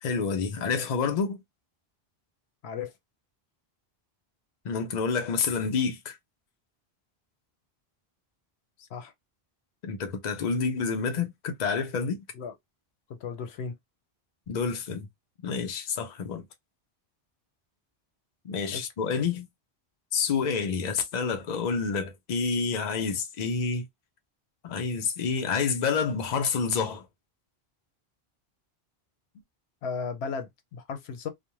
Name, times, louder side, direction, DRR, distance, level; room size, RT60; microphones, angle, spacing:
voice 1, 0.0-1.4 4.6-6.2 9.8-12.2 14.5-15.1 15.4-16.4 18.4-19.5 20.1-23.9 24.6-27.1, left 5 dB, 50° left, 0.6 m, -28 dB
voice 2, 8.8-9.1 12.3-12.5 13.1-13.7 18.7-18.9 29.8-31.3, left 5 dB, 85° left, 0.9 m, -35 dB
2.4 x 2.1 x 2.9 m
omnidirectional pair, 1.0 m